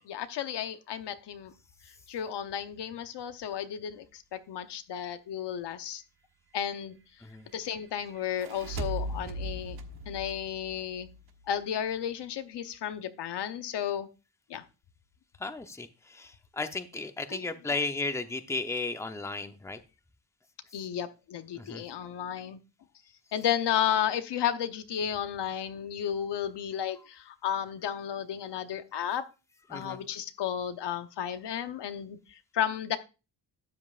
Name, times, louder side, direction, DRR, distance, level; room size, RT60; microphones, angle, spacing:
voice 1, 0.1-1.5 2.1-6.0 6.5-7.0 7.5-9.8 10.1-11.1 11.5-14.1 14.5-14.6 17.3-17.4 20.7-22.6 23.3-29.2 29.7-33.0, left 9 dB, 75° left, 9 dB, 0.9 m, -33 dB
sound 1, 8.2-11.5, right 1 dB, 65° right, 1.3 m, -38 dB
voice 2, 15.4-19.8 21.5-21.8 29.7-30.0, left 3 dB, 5° left, 8 dB, 0.7 m, -34 dB
12.5 x 7.9 x 2.5 m, 0.31 s
cardioid pair, 105°, 42 cm